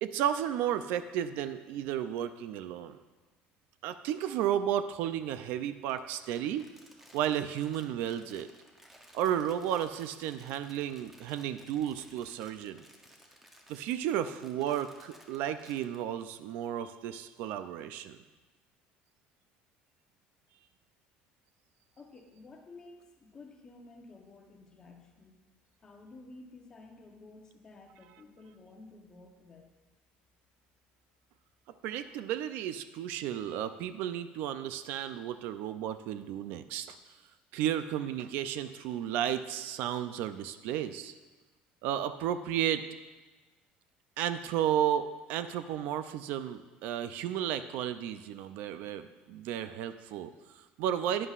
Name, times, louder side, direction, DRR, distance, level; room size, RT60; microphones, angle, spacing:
voice 1, 0.0-3.0 3.8-6.6 7.1-8.5 9.1-12.8 13.7-18.2 31.8-37.0 37.5-41.1 41.8-42.8 44.2-51.3, right 10 dB, 60° right, 11 dB, 0.4 m, -33 dB
Crumpling crinkling, 5.9-16.0, equal, 5° right, 0.7 m, -58 dB
voice 2, 22.0-25.3 25.8-29.7, left 3 dB, 20° left, 3 dB, 0.9 m, -52 dB
11.0 x 9.8 x 2.4 m, 1.2 s
cardioid pair, 175°, 3 cm